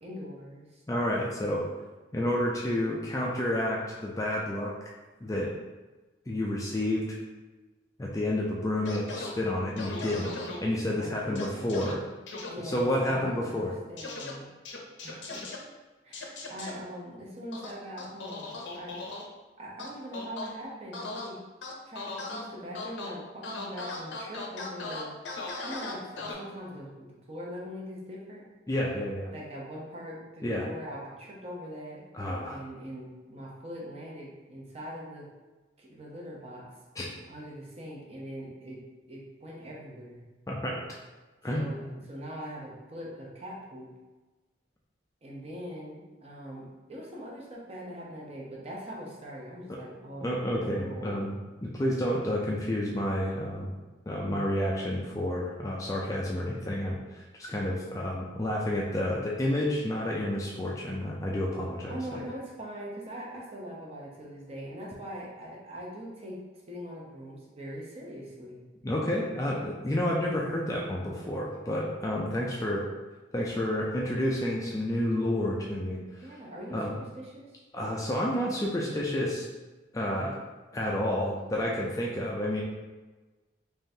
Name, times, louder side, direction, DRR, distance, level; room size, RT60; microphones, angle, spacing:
voice 1, 0.0-0.8 11.0-11.9 12.4-14.5 15.0-15.4 16.0-19.0 19.6-21.4 21.9-25.2 25.6-28.5 29.3-32.0 32.5-35.3 35.8-36.7 37.3-38.8 39.1-40.2 41.4-43.9 45.2-51.4 61.9-66.4 66.7-68.6 76.2-77.6, equal, 35° right, -4 dB, 0.7 m, -42 dB
voice 2, 0.9-1.6 2.1-4.7 5.2-5.5 6.3-7.2 8.0-10.3 10.6-12.0 12.6-13.7 28.7-29.3 30.4-30.7 32.1-32.6 37.0-37.1 40.5-40.8 41.4-41.9 50.2-51.3 51.6-53.7 54.1-57.0 57.4-62.0 68.8-72.9 73.3-76.0 76.7-76.9 77.7-79.5 79.9-80.4 80.7-82.6, left 1 dB, 15° left, -3 dB, 0.3 m, -30 dB
sound 1, 8.9-9.3 9.8-10.6 11.4-11.9 12.3-12.5 14.0-14.3 14.7-15.6 16.1-16.7 17.5-19.2 19.8-20.5 20.9-21.3 21.6-22.4 22.7-23.1 23.4-26.3, left 3 dB, 75° left, 0.6 m, -38 dB
3.6 x 3.3 x 2.7 m, 1.2 s
head